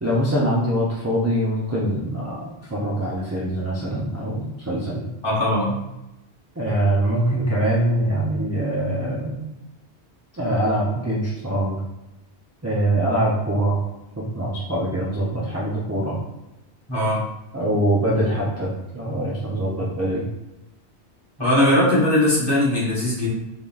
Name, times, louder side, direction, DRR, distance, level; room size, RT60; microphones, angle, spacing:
voice 1, 0.0-5.1 6.6-9.4 10.4-11.8 12.6-13.8 14.2-16.2 17.5-20.2, right 1 dB, 20° right, -6 dB, 0.4 m, -23 dB
voice 2, 5.2-5.8 16.9-17.2 21.4-23.3, left 1 dB, 20° left, -9 dB, 1.4 m, -19 dB
3.7 x 3.5 x 2.4 m, 0.92 s
omnidirectional pair, 1.1 m